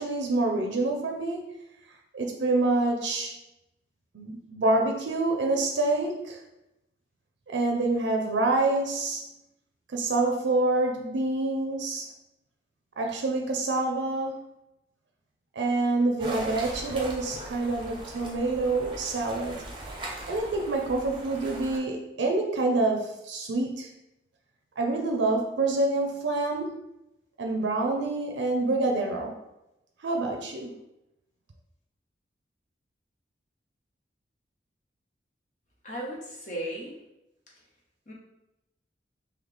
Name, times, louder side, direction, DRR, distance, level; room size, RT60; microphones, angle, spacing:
voice 1, 0.0-1.5 2.1-3.3 4.1-6.4 7.5-9.3 9.9-12.1 13.0-14.4 15.6-19.6 20.3-23.9 24.8-26.8 27.4-29.3 30.0-30.7, right 2 dB, 75° right, 1 dB, 0.5 m, -27 dB
sound 1, 16.2-21.8, right 1 dB, 25° right, 0.7 m, -39 dB
voice 2, 35.8-36.9 38.1-38.2, right 1 dB, 40° left, -4 dB, 0.8 m, -35 dB
3.9 x 2.8 x 3.4 m, 0.89 s
head